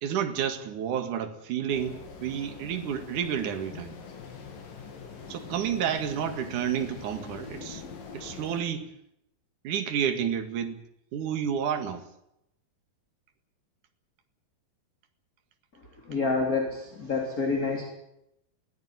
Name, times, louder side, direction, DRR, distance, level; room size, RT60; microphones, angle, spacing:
voice 1, 0.0-4.0 5.3-7.8 8.1-8.9 9.6-10.8 11.1-12.0, right 8 dB, 65° right, 3.3 m, -30 dB
sound 1, 1.7-8.6, left 5 dB, 75° left, 4.8 m, -43 dB
voice 2, 16.1-17.9, left 4 dB, 25° left, 3.6 m, -28 dB
23.0 x 17.0 x 9.5 m
omnidirectional pair, 4.0 m